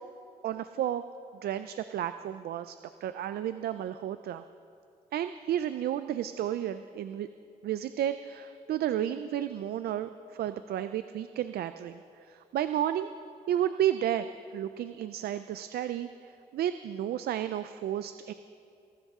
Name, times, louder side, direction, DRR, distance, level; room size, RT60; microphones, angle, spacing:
voice 1, 0.4-1.0 1.4-2.8 3.0-4.4 5.1-7.3 7.6-13.1 13.5-14.3 14.5-18.3, right 11 dB, 80° right, 11 dB, 0.4 m, -32 dB
24.0 x 13.0 x 3.6 m, 2.6 s
cardioid pair, 90°, 16 cm